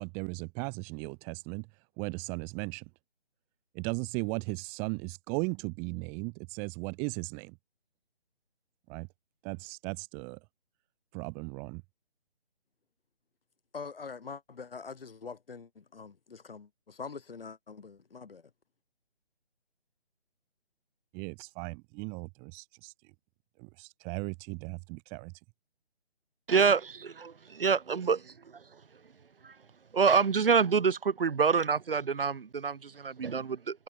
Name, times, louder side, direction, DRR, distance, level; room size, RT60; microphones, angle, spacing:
voice 1, 0.0-1.7 2.0-2.8 3.7-7.6 8.9-9.1 9.4-10.4 11.1-11.8 21.1-22.9 23.6-25.3, right 37 dB, 5° right, 0.8 m, -37 dB
voice 2, 13.7-18.5, left 5 dB, 60° left, 3.5 m, -44 dB
voice 3, 26.5-28.6 29.4-29.5 29.9-33.8, right 5 dB, 60° right, 1.3 m, -27 dB
figure-of-eight pair, 160°, 32 cm